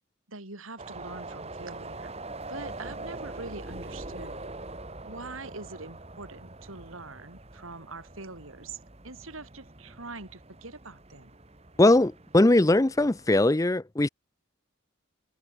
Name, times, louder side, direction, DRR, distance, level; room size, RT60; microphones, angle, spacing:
voice 1, 0.3-2.1 2.4-4.5 5.0-8.8 9.0-11.4, right 3 dB, 85° right, 4.9 m, -43 dB
sound 1, 0.8-13.5, right 2 dB, 30° right, 2.0 m, -43 dB
voice 2, 11.8-14.1, left 2 dB, 15° left, 0.5 m, -20 dB
head